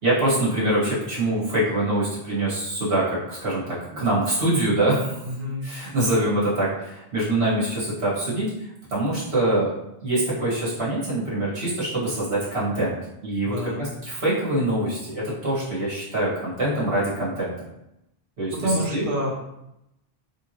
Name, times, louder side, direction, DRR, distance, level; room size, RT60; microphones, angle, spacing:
voice 1, 0.0-5.2 5.6-8.5 8.9-9.7 10.0-17.7 18.4-18.5 18.9-19.0, right 1 dB, 75° right, -8 dB, 1.9 m, -24 dB
voice 2, 5.2-5.7 13.4-13.9 18.5-19.3, equal, 55° right, -3 dB, 1.2 m, -27 dB
3.8 x 3.6 x 2.9 m, 0.86 s
omnidirectional pair, 1.0 m